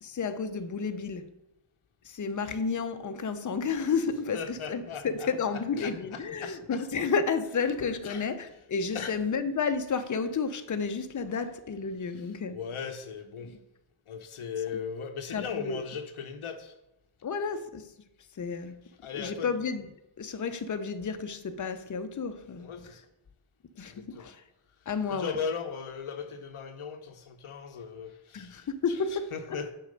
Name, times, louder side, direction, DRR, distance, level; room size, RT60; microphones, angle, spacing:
voice 1, 0.0-1.3 2.1-12.6 13.4-13.5 15.3-15.8 17.2-17.9 18.4-18.8 19.1-19.9 20.2-22.7 23.8-24.4 24.9-25.4 28.3-29.7, left 5 dB, 40° left, 0.6 m, -31 dB
voice 2, 4.3-6.8 8.0-8.2 8.9-9.1 12.5-13.5 14.1-16.7 19.0-19.5 22.6-23.0 23.9-24.3 25.1-28.7 29.3-29.7, left 6 dB, 85° left, 0.7 m, -38 dB
6.4 x 4.6 x 5.2 m
wide cardioid pair, 85°, 49 cm